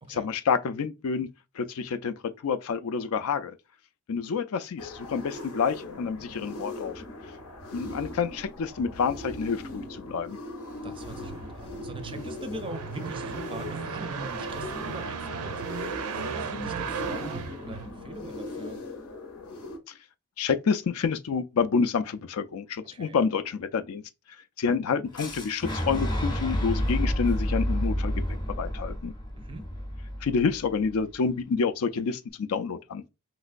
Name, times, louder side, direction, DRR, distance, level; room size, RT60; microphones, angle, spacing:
voice 1, 0.1-1.3 1.6-3.5 4.1-7.0 7.7-10.4 20.4-24.0 24.6-29.1 30.2-33.0, left 5 dB, 75° left, 0.4 m, -28 dB
sound 1, 4.8-19.8, left 2 dB, 90° left, 0.9 m, -40 dB
voice 2, 10.8-18.8 22.8-23.2 29.4-29.7, right 1 dB, 25° right, 0.4 m, -42 dB
sound 2, 10.8-18.4, right 6 dB, 85° right, 0.5 m, -36 dB
Fire / Explosion, 25.2-31.0, equal, 20° left, 0.6 m, -30 dB
3.3 x 3.0 x 2.5 m
head